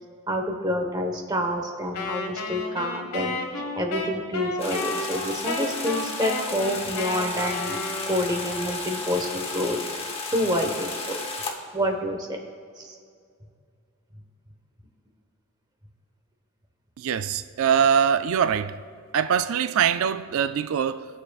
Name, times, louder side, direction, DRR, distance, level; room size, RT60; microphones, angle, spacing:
voice 1, 0.3-7.8 8.1-9.8 10.3-11.2 11.7-12.3 12.8-13.0, equal, 20° right, 1.1 m, -28 dB
Wind instrument woodwind instrument, 1.9-8.8, left 2 dB, 90° left, 1.3 m, -32 dB
sound 1, 4.6-11.5, left 3 dB, 25° left, 0.9 m, -33 dB
voice 2, 17.0-18.8 19.1-21.1, right 7 dB, 65° right, 0.3 m, -23 dB
21.0 x 7.0 x 2.4 m
head